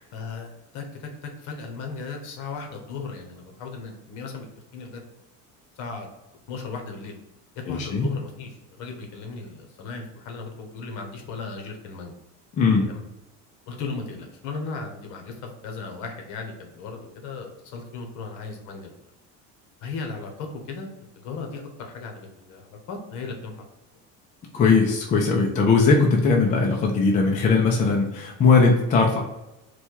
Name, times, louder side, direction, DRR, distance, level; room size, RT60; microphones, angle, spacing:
voice 1, 0.1-4.5 4.7-5.0 5.8-6.1 6.5-7.1 7.7-12.1 12.9-13.0 13.7-18.9 19.8-20.9 21.2-23.5, left 4 dB, 60° left, 3 dB, 1.0 m, -36 dB
voice 2, 7.7-8.1 12.6-12.9 24.5-29.2, left 4 dB, 20° left, 0 dB, 0.4 m, -19 dB
4.2 x 2.3 x 4.5 m, 0.97 s
cardioid pair, 170°, 34 cm